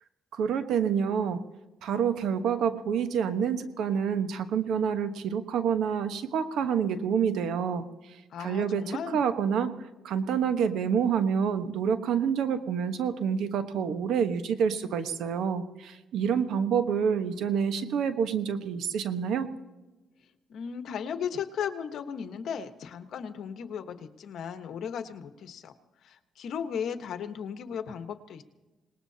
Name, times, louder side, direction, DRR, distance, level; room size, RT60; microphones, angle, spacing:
voice 1, 0.3-1.4 1.8-7.8 8.4-9.7 10.0-19.5, right 7 dB, 75° right, 9 dB, 1.2 m, -27 dB
voice 2, 8.3-9.2 20.5-25.7 26.0-28.4, left 7 dB, 70° left, 8 dB, 1.2 m, -36 dB
26.0 x 19.5 x 2.9 m, 1.1 s
cardioid pair, 90°, 0 cm